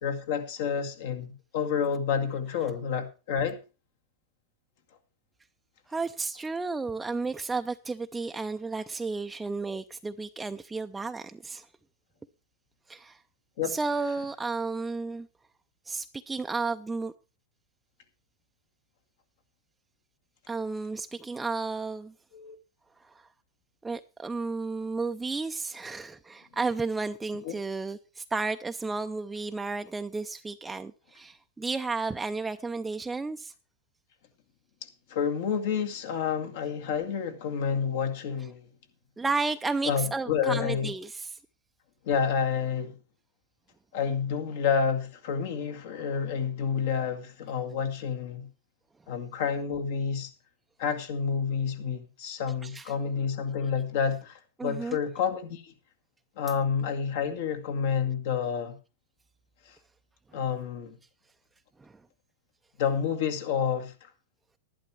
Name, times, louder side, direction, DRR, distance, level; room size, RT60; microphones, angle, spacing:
voice 1, 0.0-3.6 13.6-13.8 22.3-22.6 27.4-27.6 35.1-38.6 39.8-40.9 42.1-42.9 43.9-48.5 49.1-50.3 50.8-55.7 56.4-58.8 60.3-61.0 62.8-63.9, left 7 dB, 70° left, 2.0 m, -29 dB
voice 2, 5.9-11.7 12.9-13.2 13.6-15.3 15.9-17.1 20.5-22.1 23.0-23.3 23.8-33.5 39.2-41.4 52.6-52.9 54.6-55.0 61.8-62.0, right 3 dB, 10° right, 0.5 m, -33 dB
11.5 x 11.0 x 4.6 m
hypercardioid pair, 115°, 0 cm